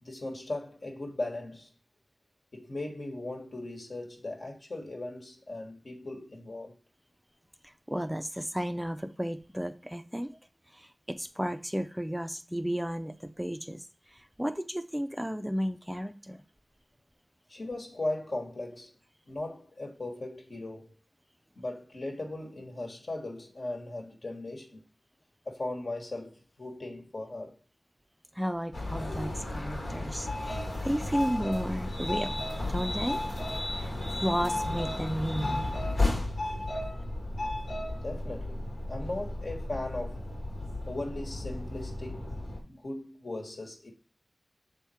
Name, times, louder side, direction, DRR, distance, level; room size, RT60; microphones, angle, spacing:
voice 1, 0.0-1.7 2.5-6.7 17.5-18.9 19.3-20.9 21.6-24.8 25.4-27.6 37.9-40.2 40.9-42.3 42.6-43.9, left 2 dB, 65° left, 1.3 m, -38 dB
voice 2, 7.9-10.3 11.1-13.8 14.4-16.4 28.4-32.3 32.7-33.2 34.2-35.7, equal, 5° right, 0.4 m, -33 dB
sound 1, 28.7-42.6, left 1 dB, 85° left, 1.5 m, -33 dB
6.5 x 3.5 x 4.2 m
wide cardioid pair, 55°, 0 cm